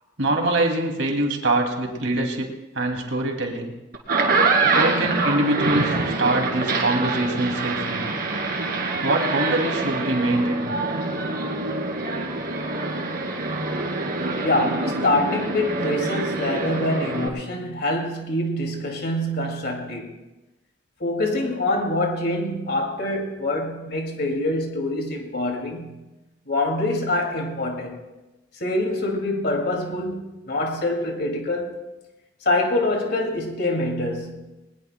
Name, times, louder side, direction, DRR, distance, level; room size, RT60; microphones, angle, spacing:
voice 1, 0.2-2.5 2.8-3.7 4.7-8.0 8.9-10.7, right 2 dB, 80° right, 2.5 m, -24 dB
sound 1, 3.9-17.3, right 3 dB, 50° right, 2.2 m, -25 dB
voice 2, 14.4-20.2 21.0-26.0 26.5-28.0 28.5-31.8 32.4-34.5, left 1 dB, 55° left, 2.4 m, -25 dB
21.0 x 20.5 x 2.2 m
head